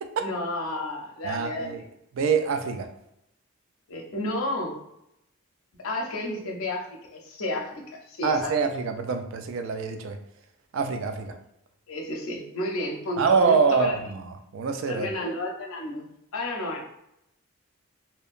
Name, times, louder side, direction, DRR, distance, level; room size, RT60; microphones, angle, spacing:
voice 1, 0.2-1.8 3.9-4.8 5.8-8.5 11.9-14.0 14.9-16.8, left 1 dB, 75° left, 0 dB, 0.6 m, -32 dB
voice 2, 1.2-1.8 2.1-2.9 8.2-10.2 10.7-11.4 13.2-14.3 14.5-15.1, right 5 dB, 65° right, 7 dB, 0.3 m, -25 dB
2.8 x 2.2 x 2.4 m, 0.81 s
head